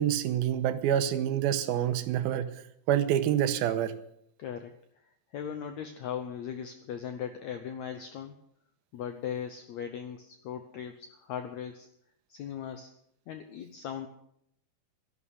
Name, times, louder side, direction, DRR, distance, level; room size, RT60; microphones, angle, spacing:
voice 1, 0.0-2.5 2.9-3.9, right 10 dB, 85° right, 11 dB, 2.7 m, -27 dB
voice 2, 4.4-4.8 5.3-8.4 8.9-11.9 12.3-12.9 13.3-14.1, left 8 dB, 80° left, 8 dB, 1.6 m, -38 dB
13.0 x 11.0 x 6.5 m, 0.73 s
omnidirectional pair, 4.3 m